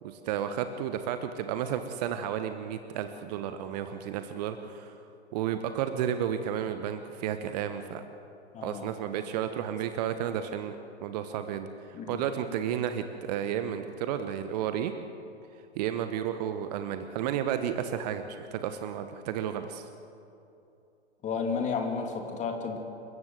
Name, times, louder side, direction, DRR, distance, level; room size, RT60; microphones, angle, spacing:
voice 1, 0.0-5.0 5.3-8.0 8.6-14.9 15.7-19.9, right 9 dB, 35° right, 9 dB, 1.1 m, -32 dB
voice 2, 8.5-8.9 11.9-12.2 21.2-22.8, left 5 dB, 20° left, 3 dB, 2.8 m, -32 dB
28.0 x 15.0 x 7.9 m, 2.7 s
figure-of-eight pair, 110°, 35 cm